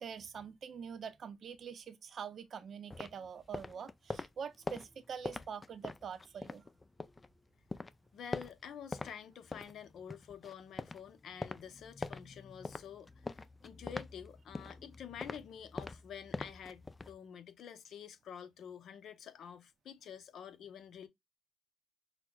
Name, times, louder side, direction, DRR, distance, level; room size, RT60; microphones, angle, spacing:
voice 1, 0.0-6.6, right 7 dB, 55° right, 0.6 m, -45 dB
sound 1, 2.9-7.3 7.6-9.1 9.4-17.2, left 3 dB, 25° left, 0.4 m, -44 dB
voice 2, 8.1-21.1, left 8 dB, 70° left, 0.7 m, -49 dB
6.0 x 2.1 x 2.2 m
cardioid pair, 90°, 0 cm